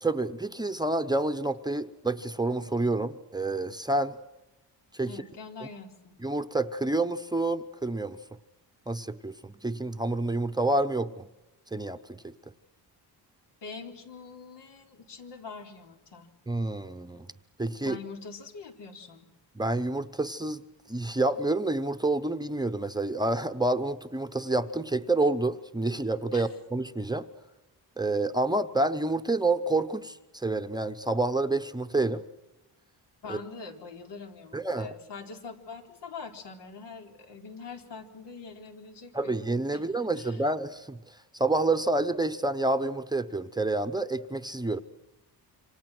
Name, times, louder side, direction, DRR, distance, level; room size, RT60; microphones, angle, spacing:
voice 1, 0.0-4.2 4.9-5.1 6.2-8.2 8.9-11.3 11.7-12.3 16.5-17.3 17.6-18.0 19.5-20.6 20.9-27.3 28.0-32.2 33.3-33.4 34.5-34.9 39.1-41.0 41.3-44.8, right 2 dB, 10° right, 8 dB, 0.8 m, -28 dB
voice 2, 5.1-6.2 13.6-16.3 17.8-19.3 26.3-26.6 33.2-39.4 39.7-39.8 40.2-40.4, left 5 dB, 85° left, 3 dB, 4.3 m, -44 dB
28.0 x 26.0 x 6.1 m, 0.97 s
wide cardioid pair, 175°, 41 cm